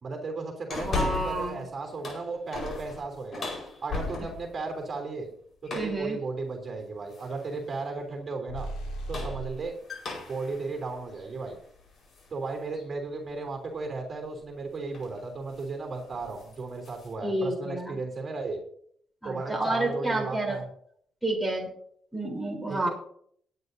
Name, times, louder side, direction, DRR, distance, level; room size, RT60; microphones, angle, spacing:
voice 1, 0.0-3.5 3.8-5.3 5.6-8.7 9.1-9.7 10.3-11.6 12.3-18.6 19.2-20.7 22.7-22.9, right 3 dB, 40° right, 2 dB, 3.3 m, -35 dB
sound 1, 0.7-1.5 1.9-4.6 5.6-6.1 7.1-7.5 8.8-12.3 12.7-12.8 14.4-14.6 14.9-15.2 15.5-15.7 16.1-17.1, left 3 dB, 50° left, 4.8 m, -37 dB
voice 2, 0.8-1.6 5.7-6.2 17.2-18.0 19.2-20.6 21.2-21.7 22.1-22.9, right 1 dB, ahead, -2 dB, 3.9 m, -29 dB
sound 2, 8.5-9.7, right 1 dB, 85° left, 4.6 m, -36 dB
20.5 x 9.5 x 2.8 m, 0.64 s
cardioid pair, 90°, 0 cm